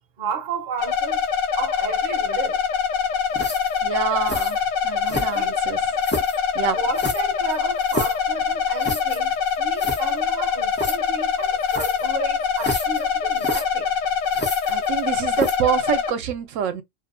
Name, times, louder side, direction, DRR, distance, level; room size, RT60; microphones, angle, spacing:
voice 1, 0.2-1.3 1.5-2.6 5.2-5.6 6.7-13.9, right 5 dB, 50° right, 0.7 m, -33 dB
sound 1, 0.8-16.1, left 7 dB, 75° left, 1.0 m, -24 dB
sound 2, 3.3-3.8 4.3-4.6 5.1-5.6 6.0-6.4 7.0-8.2 8.8-9.2 9.5-9.6 9.8-10.0 10.8-11.0 11.7-12.1 12.6-13.0 13.4-13.6 14.3-15.0 15.3-15.7, left 1 dB, 15° left, 0.4 m, -29 dB
voice 2, 3.8-4.6 4.8-5.8 6.6-6.8 14.7-16.8, right 8 dB, 80° right, 0.9 m, -26 dB
2.5 x 2.1 x 2.4 m
omnidirectional pair, 1.3 m